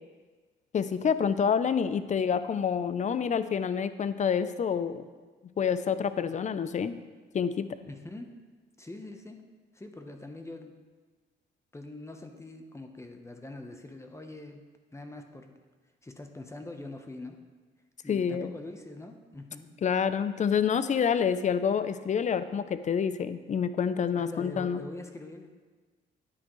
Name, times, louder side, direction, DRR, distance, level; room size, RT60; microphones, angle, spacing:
voice 1, 0.7-5.0 5.6-7.0 7.3-7.8 18.1-18.5 19.8-24.8, left 7 dB, 40° left, 13 dB, 0.5 m, -27 dB
voice 2, 7.8-8.3 8.8-9.4 9.7-10.8 11.7-14.6 14.9-15.5 16.0-17.4 18.0-19.7 24.2-25.5, left 2 dB, 15° left, 5 dB, 0.9 m, -43 dB
9.7 x 8.9 x 3.2 m, 1.4 s
cardioid pair, 90°, 20 cm